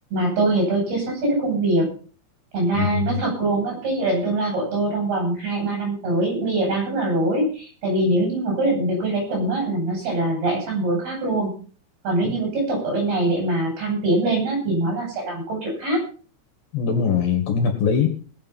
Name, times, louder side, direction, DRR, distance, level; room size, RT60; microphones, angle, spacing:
voice 1, 0.1-1.9 2.5-11.5 12.0-16.0, right 2 dB, 60° right, 0 dB, 9.7 m, -23 dB
voice 2, 2.7-3.1 12.2-12.4 16.7-18.1, left 6 dB, 60° left, 5 dB, 3.6 m, -22 dB
19.0 x 8.6 x 5.6 m, 0.39 s
omnidirectional pair, 5.1 m